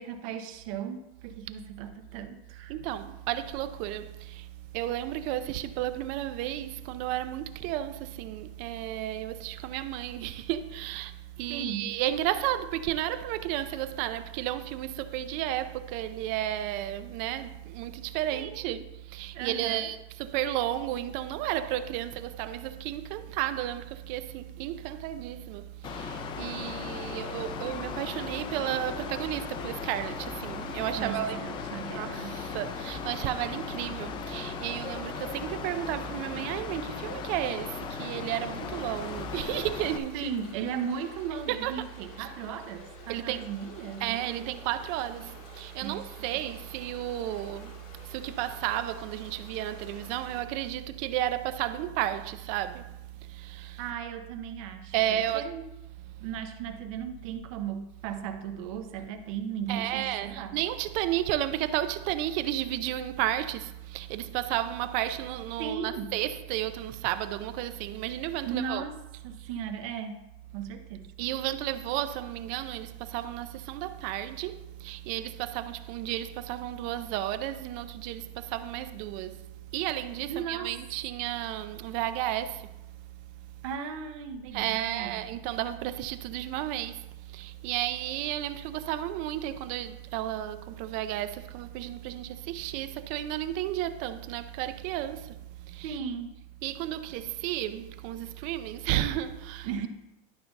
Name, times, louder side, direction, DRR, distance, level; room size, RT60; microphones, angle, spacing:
voice 1, 0.0-2.7 11.5-11.9 18.3-18.8 19.3-19.9 31.0-32.4 40.1-44.1 45.8-46.3 53.8-55.7 56.2-60.6 65.6-66.1 68.5-69.0 69.2-70.2 70.5-71.1 80.3-80.8 83.6-85.2 95.8-96.3 99.6-99.9, right 7 dB, 65° right, 1.0 m, -36 dB
voice 2, 2.7-31.5 32.0-40.7 41.5-41.9 42.2-42.3 43.1-43.5 44.0-53.9 54.9-55.5 56.0-56.3 59.7-68.8 69.1-69.5 71.2-83.3 83.6-83.7 84.5-96.0 96.6-99.9, right 13 dB, 45° right, 0.5 m, -33 dB
Mechanical fan, 25.8-40.0, left 7 dB, 25° left, 0.5 m, -37 dB
sound 1, 38.9-50.4, left 4 dB, 85° left, 2.0 m, -51 dB
11.5 x 3.9 x 5.9 m
cardioid pair, 170°, 19 cm